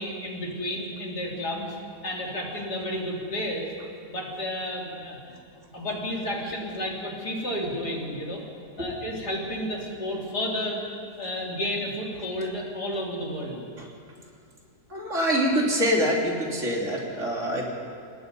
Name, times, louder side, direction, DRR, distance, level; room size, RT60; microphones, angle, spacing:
voice 1, 0.0-1.7 2.0-3.7 4.1-5.4 5.7-8.4 8.8-10.8 11.2-13.7, equal, 70° left, -2 dB, 3.9 m, -31 dB
voice 2, 14.9-17.6, equal, 45° right, -2 dB, 3.5 m, -25 dB
30.0 x 18.0 x 5.4 m, 2.3 s
omnidirectional pair, 1.8 m